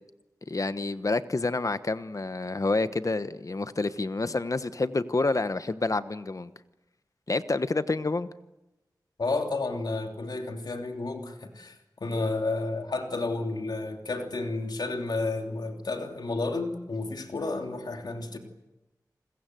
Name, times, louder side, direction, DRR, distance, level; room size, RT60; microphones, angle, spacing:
voice 1, 0.5-6.5 7.3-8.3, left 3 dB, 50° left, 1.2 m, -28 dB
voice 2, 9.2-11.7 12.0-18.4, left 3 dB, 75° left, 3.1 m, -31 dB
29.5 x 21.5 x 7.8 m
cardioid pair, 45°, 7 cm